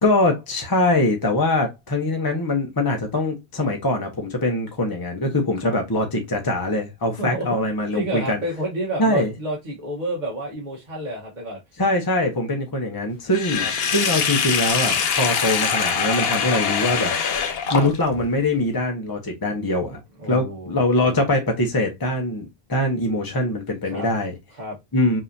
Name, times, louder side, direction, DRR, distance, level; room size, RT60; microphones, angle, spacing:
voice 1, 0.0-8.4 9.0-9.3 11.8-17.1 17.7-20.0 20.3-24.3 24.9-25.2, left 2 dB, 25° left, 0.9 m, -23 dB
voice 2, 7.2-7.6 7.9-11.6 13.6-13.7 17.7-17.9 20.2-20.7 21.0-21.3 23.9-24.1 24.5-24.8, right 1 dB, 45° right, 1.3 m, -30 dB
Sink (filling or washing), 13.3-18.2, left 6 dB, 70° left, 0.9 m, -23 dB
5.4 x 2.9 x 2.6 m
omnidirectional pair, 1.1 m